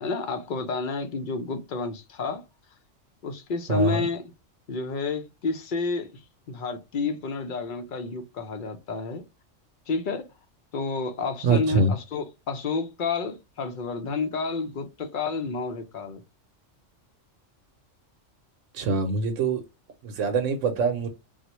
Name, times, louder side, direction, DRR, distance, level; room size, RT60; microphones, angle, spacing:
voice 1, 0.0-2.4 3.2-4.2 4.7-6.1 6.5-9.2 9.9-10.2 10.7-16.2, left 4 dB, 50° left, 0.6 m, -30 dB
voice 2, 3.7-4.1 11.4-11.9 18.7-19.6 20.0-21.1, right 3 dB, 85° right, 1.0 m, -24 dB
3.9 x 2.1 x 2.9 m
omnidirectional pair, 1.3 m